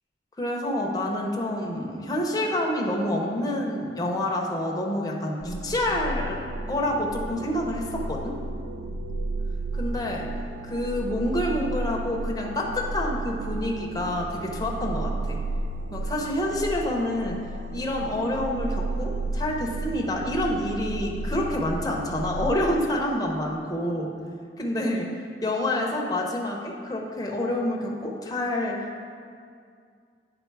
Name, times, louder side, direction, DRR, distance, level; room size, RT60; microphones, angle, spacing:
voice 1, 0.4-6.4 6.7-8.4 9.8-10.3 10.7-15.4 15.9-17.4 17.7-24.1 24.6-25.1 25.4-28.8, left 1 dB, 20° left, -1 dB, 0.7 m, -27 dB
sound 1, 5.4-22.5, right 2 dB, 85° right, 0.4 m, -33 dB
9.2 x 3.7 x 4.7 m, 2.3 s
head